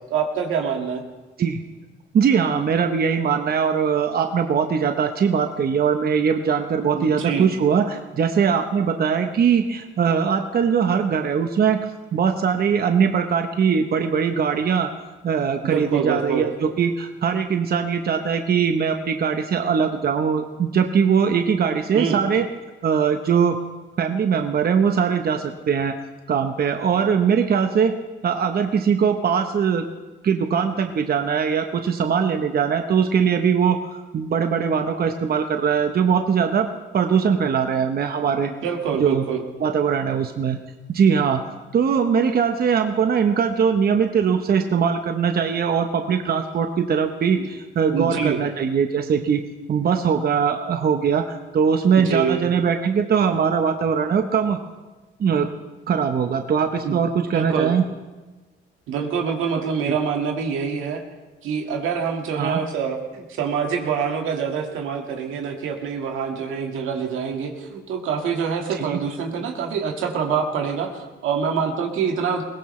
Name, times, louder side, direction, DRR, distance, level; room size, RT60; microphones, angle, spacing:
voice 1, 0.1-1.0 6.9-7.5 15.6-16.5 21.9-22.2 38.6-39.4 47.4-47.5 47.9-48.4 52.0-52.4 56.8-57.0 57.3-57.7 58.9-61.0 61.4-72.4, right 6 dB, 85° right, 3 dB, 1.9 m, -25 dB
voice 2, 2.1-11.8 12.1-14.9 15.2-22.5 22.8-23.6 24.0-26.0 26.3-28.0 28.2-29.8 30.2-36.7 36.9-38.5 39.0-39.2 39.6-40.6 40.9-41.4 41.7-49.4 49.7-54.6 55.2-55.5 55.9-57.9 59.8-59.9 62.4-62.6 68.7-69.0, right 6 dB, 50° right, 6 dB, 1.0 m, -21 dB
21.0 x 17.0 x 3.3 m, 1.2 s
cardioid pair, 90°, 20 cm